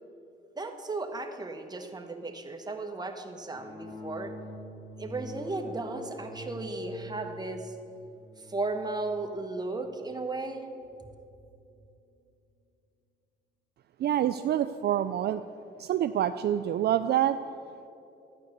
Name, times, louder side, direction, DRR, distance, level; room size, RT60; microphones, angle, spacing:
voice 1, 0.6-4.3 5.0-7.8 8.4-10.7 11.0-11.2, right 3 dB, 20° right, 4 dB, 1.2 m, -35 dB
sound 1, 3.5-11.6, left 1 dB, 55° left, 2.7 m, -45 dB
voice 2, 14.0-15.4 15.8-17.4, right 11 dB, 55° right, 10 dB, 0.4 m, -26 dB
12.5 x 9.4 x 6.7 m, 2.8 s
cardioid pair, 90°, 20 cm